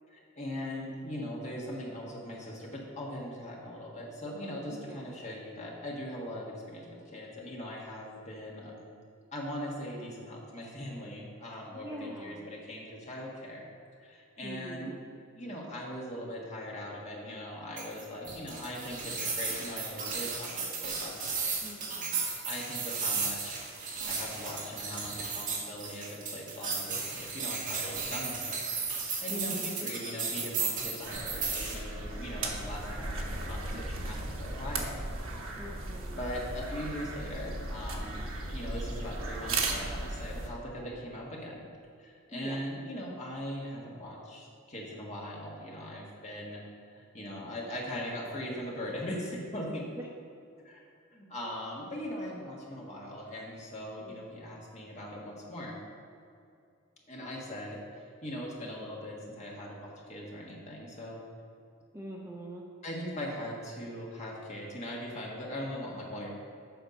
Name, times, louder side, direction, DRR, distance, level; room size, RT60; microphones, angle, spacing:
voice 1, 0.1-8.8 9.3-13.6 14.0-14.9 15.3-21.2 22.4-28.6 29.2-35.0 36.2-41.7 42.0-46.6 46.9-49.9 50.6-55.8 57.1-61.2 62.8-66.3, equal, 30° left, -3 dB, 1.6 m, -40 dB
voice 2, 4.7-5.1 11.7-12.5 14.4-15.0 21.6-22.3 29.3-29.8 35.6-36.2 42.3-42.6 49.9-50.1 54.0-54.4 61.9-62.6, equal, 10° right, -1 dB, 0.6 m, -44 dB
sound 1, 17.8-31.8, right 4 dB, 40° right, 1.4 m, -35 dB
sound 2, 31.1-40.5, right 2 dB, 75° right, 1.1 m, -36 dB
8.2 x 5.8 x 5.3 m, 2.5 s
head